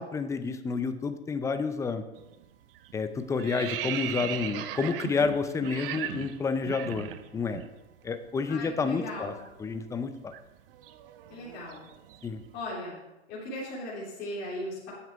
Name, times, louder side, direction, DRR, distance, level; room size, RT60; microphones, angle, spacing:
voice 1, 0.0-2.0 2.9-7.6 8.0-9.3 9.6-10.3 12.2-12.4, left 4 dB, 10° left, 10 dB, 0.5 m, -30 dB
sound 1, 2.1-2.4 2.7-7.7 8.0-8.2 8.5-12.5, right 11 dB, 55° right, 0.7 m, -38 dB
voice 2, 8.5-9.3 11.3-11.8 12.5-13.0 13.3-14.9, left 1 dB, 35° left, -8 dB, 3.5 m, -37 dB
9.6 x 7.2 x 4.7 m, 0.99 s
hypercardioid pair, 125°, 33 cm